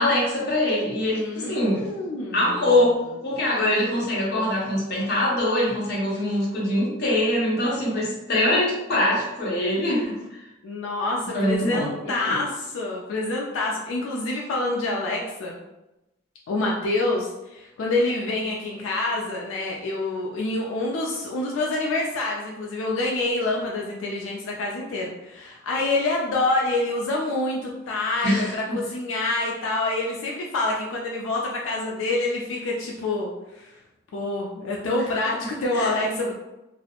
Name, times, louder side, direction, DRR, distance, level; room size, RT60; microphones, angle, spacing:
voice 1, 0.0-1.9 2.3-2.9 3.2-10.2 11.3-12.4 28.2-28.8 35.7-35.9, left 1 dB, 55° left, -5 dB, 0.8 m, -23 dB
voice 2, 1.1-2.6 10.6-15.6 16.5-33.8 34.1-36.3, left 2 dB, 90° left, -2 dB, 0.4 m, -27 dB
2.4 x 2.0 x 2.7 m, 0.96 s
head